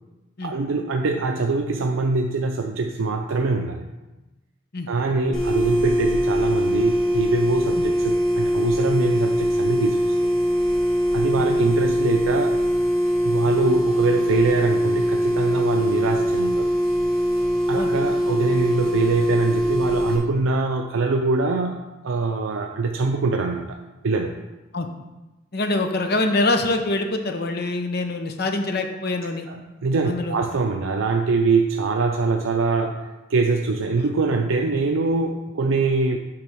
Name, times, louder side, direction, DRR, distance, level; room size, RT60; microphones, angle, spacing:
voice 1, 0.4-3.9 4.9-10.3 11.1-12.6 13.2-16.7 17.7-23.8 24.0-24.4 29.5-36.2, right 3 dB, 85° right, 3 dB, 0.5 m, -23 dB
sound 1, 5.3-20.2, equal, 5° left, 1.2 m, -22 dB
voice 2, 25.5-29.5 30.1-30.4 34.0-34.1, left 2 dB, 55° left, 6 dB, 0.8 m, -25 dB
8.6 x 3.5 x 6.1 m, 1.1 s
head